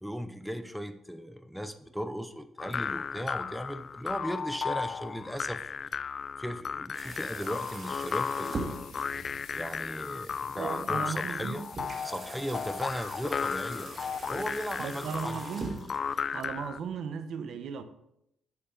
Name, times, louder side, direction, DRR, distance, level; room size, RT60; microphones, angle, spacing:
voice 1, 0.0-5.7 6.4-8.7 9.5-11.6 12.0-13.9 14.3-15.4, equal, ahead, 0.6 m, -37 dB
sound 1, 2.6-16.8, left 6 dB, 45° left, 0.3 m, -35 dB
sound 2, 6.9-16.9, right 3 dB, 35° right, 1.7 m, -43 dB
sound 3, 7.1-15.2, left 6 dB, 75° left, 2.3 m, -52 dB
voice 2, 10.6-11.7 14.8-15.9 16.3-17.8, right 6 dB, 65° right, 1.0 m, -36 dB
11.0 x 7.9 x 3.9 m
cardioid pair, 120°, 0 cm